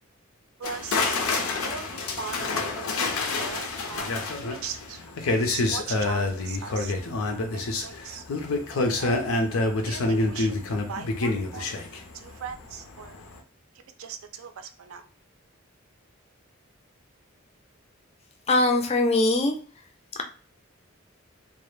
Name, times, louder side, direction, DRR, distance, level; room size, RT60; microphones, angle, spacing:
sound 1, 0.6-12.7 13.0-13.3, left 2 dB, 90° left, 0.5 m, -27 dB
voice 1, 0.6-1.2 1.6-4.2 4.6-5.0 5.3-7.2 7.5-8.3 9.0-9.3 9.8-11.8 12.1-13.2 13.7-15.1, right 6 dB, 85° right, 8 dB, 0.4 m, -40 dB
voice 2, 18.5-19.6, left 2 dB, 30° left, 4 dB, 0.3 m, -21 dB
2.2 x 2.0 x 3.1 m, 0.41 s
head